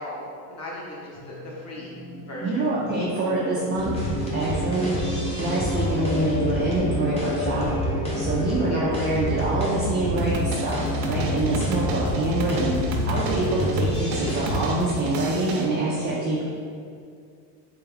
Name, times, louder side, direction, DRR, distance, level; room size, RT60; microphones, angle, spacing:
voice 1, 0.0-1.9 2.3-2.7 4.9-5.0 5.7-5.9 8.6-8.9, left 1 dB, 30° left, -4 dB, 1.0 m, -37 dB
sound 1, 1.1-12.5, left 1 dB, 65° left, 1.4 m, -34 dB
voice 2, 2.4-3.9 4.3-4.9 5.4-7.7 8.2-12.8 13.1-16.4, right 2 dB, 25° right, -7 dB, 0.3 m, -25 dB
sound 2, 3.7-14.7, left 1 dB, 15° left, 0.6 m, -29 dB
sound 3, 10.2-15.7, right 3 dB, 75° right, 0.7 m, -32 dB
3.4 x 3.4 x 3.4 m, 2.3 s
supercardioid pair, 125°, 49 cm